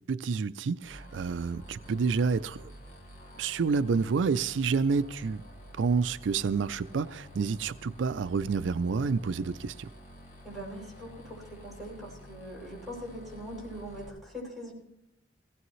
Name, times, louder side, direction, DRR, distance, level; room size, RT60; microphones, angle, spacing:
voice 1, 0.1-2.7 3.4-5.4 5.8-9.9, right 5 dB, 90° right, 0.4 m, -29 dB
sound 1, 0.8-14.1, equal, 45° left, 3.2 m, -50 dB
voice 2, 10.4-14.7, equal, ahead, 6.6 m, -42 dB
18.5 x 16.5 x 3.2 m
head